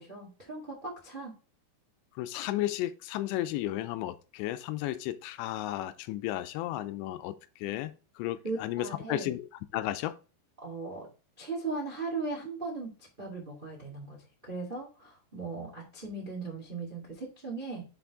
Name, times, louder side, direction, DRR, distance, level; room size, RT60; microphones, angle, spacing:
voice 1, 0.0-1.3 8.4-9.3 10.6-11.1 11.4-17.8, right 3 dB, 90° right, 0.4 m, -38 dB
voice 2, 2.2-9.5 9.7-10.2, left 14 dB, 85° left, 2.8 m, -34 dB
7.0 x 5.9 x 3.6 m
omnidirectional pair, 5.1 m